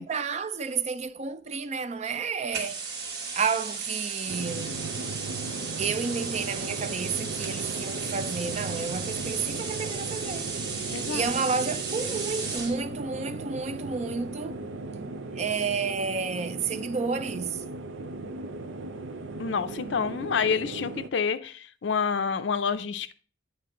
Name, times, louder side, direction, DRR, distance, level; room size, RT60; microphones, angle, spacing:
voice 1, 0.0-2.8 3.3-4.8 5.8-10.5 11.1-14.6 15.4-17.6, right 5 dB, 35° right, 0.4 m, -31 dB
Plasma cutter gas, 2.5-12.8, right 5 dB, 60° right, 1.4 m, -35 dB
sound 1, 4.3-21.1, right 3 dB, 90° right, 0.7 m, -37 dB
voice 2, 10.9-11.3 19.4-23.1, left 6 dB, 70° left, 0.5 m, -28 dB
9.4 x 4.4 x 3.7 m
head